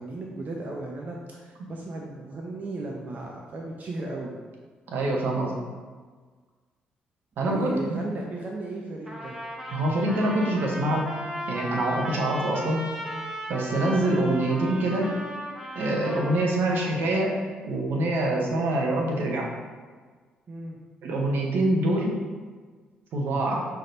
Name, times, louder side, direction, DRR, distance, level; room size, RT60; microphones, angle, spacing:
voice 1, 0.0-4.3 7.4-9.4 20.5-20.8, right 2 dB, 45° right, -1 dB, 0.6 m, -36 dB
voice 2, 4.9-5.5 7.4-8.0 9.7-11.1 11.5-12.8 13.5-15.1 15.7-17.3 17.6-19.5 21.0-22.1 23.1-23.7, right 1 dB, 65° right, -1 dB, 0.9 m, -25 dB
Trumpet, 9.1-16.8, equal, 15° right, 1.0 m, -36 dB
5.6 x 3.4 x 2.6 m, 1.5 s
hypercardioid pair, 50°, 4 cm